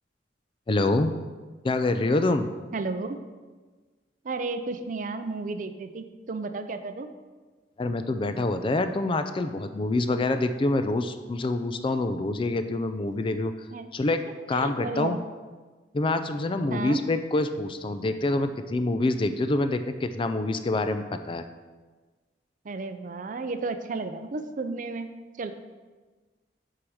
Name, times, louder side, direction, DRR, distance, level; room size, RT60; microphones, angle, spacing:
voice 1, 0.7-1.1 1.6-2.5 7.8-13.5 13.9-14.2 14.5-15.2 15.9-21.4, left 2 dB, 30° left, 9 dB, 0.4 m, -26 dB
voice 2, 2.7-3.2 4.2-7.1 13.7-13.9 14.5-15.2 16.7-17.0 22.6-25.1 25.4-25.5, right 3 dB, 50° right, 9 dB, 0.5 m, -33 dB
6.1 x 4.8 x 6.3 m, 1.3 s
head